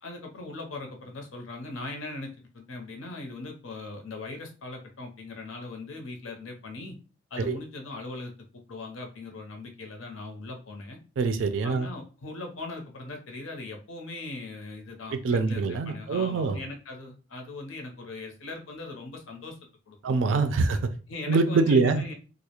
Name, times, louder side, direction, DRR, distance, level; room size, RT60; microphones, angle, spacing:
voice 1, 0.0-7.0 7.3-11.0 11.6-19.6 19.9-20.2 21.1-22.1, left 2 dB, 90° left, 3 dB, 0.6 m, -40 dB
voice 2, 11.2-11.9 15.1-16.6 20.0-20.9 21.3-22.0, right 4 dB, 70° right, 9 dB, 0.3 m, -24 dB
2.3 x 2.0 x 2.8 m, 0.35 s
head